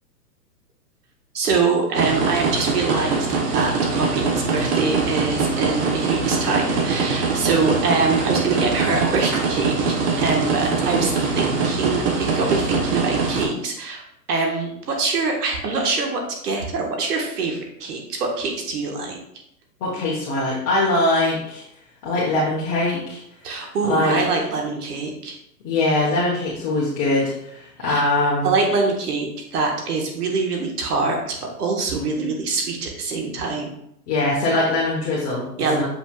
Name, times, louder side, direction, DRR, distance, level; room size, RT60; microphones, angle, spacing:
voice 1, 1.3-3.3 3.5-14.0 14.3-19.2 23.4-25.4 27.8-28.0 28.4-33.7 35.6-35.8, right 4 dB, 65° right, 1 dB, 1.7 m, -24 dB
sound 1, 1.9-13.5, right 4 dB, 30° right, 1.1 m, -22 dB
voice 2, 19.8-21.6 22.0-23.2 23.8-24.2 25.6-28.5 34.1-35.4 35.7-35.8, left 2 dB, 30° left, -6 dB, 1.5 m, -22 dB
7.1 x 5.8 x 2.5 m, 0.77 s
hypercardioid pair, 130°, 50 cm